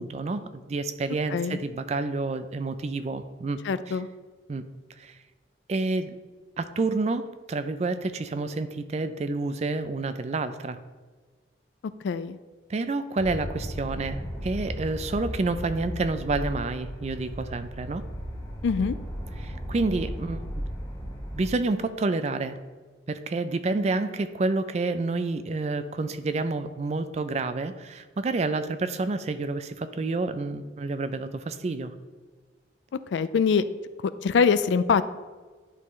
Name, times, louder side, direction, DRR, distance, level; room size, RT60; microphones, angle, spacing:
voice 1, 0.0-3.6 3.9-4.0 4.5-4.6 5.0-5.2 5.7-6.2 6.6-10.8 12.7-18.0 19.4-20.6 21.3-22.6 23.1-31.9, right 3 dB, 35° right, 11 dB, 0.3 m, -29 dB
voice 2, 3.7-4.1 12.0-12.4 18.6-19.0 33.1-33.6 34.2-35.0, left 6 dB, 75° left, 14 dB, 0.3 m, -23 dB
sound 1, 13.2-21.5, equal, 20° left, 1.3 m, -35 dB
11.0 x 3.8 x 3.1 m, 1.4 s
head